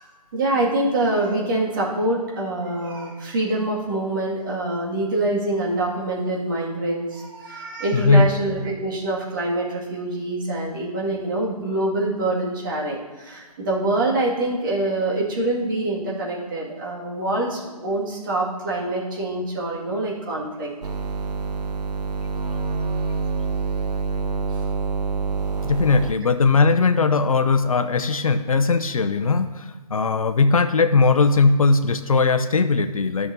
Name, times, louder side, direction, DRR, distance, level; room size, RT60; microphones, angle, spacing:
voice 1, 0.3-20.7, right 2 dB, 30° right, -4 dB, 2.0 m, -25 dB
voice 2, 7.9-8.3 25.6-33.3, left 4 dB, 55° left, 8 dB, 0.6 m, -19 dB
sound 1, 20.8-26.1, right 4 dB, 75° right, 0.7 m, -26 dB
13.5 x 6.0 x 2.7 m, 1.4 s
figure-of-eight pair, 155°, 21 cm